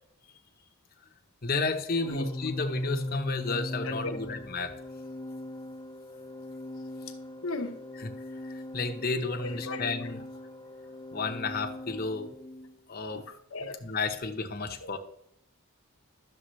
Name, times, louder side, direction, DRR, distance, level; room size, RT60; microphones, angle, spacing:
voice 1, 1.4-4.7 8.0-8.1 8.5-10.3 11.1-12.3 12.9-13.2 13.8-15.0, left 3 dB, 45° left, 0.9 m, -32 dB
Organ, 2.0-12.8, left 2 dB, 15° left, 0.5 m, -39 dB
voice 2, 3.8-4.3 7.4-7.7 9.4-9.8 13.1-13.8 14.8-15.0, left 2 dB, 70° left, 1.0 m, -37 dB
11.5 x 7.1 x 3.2 m
head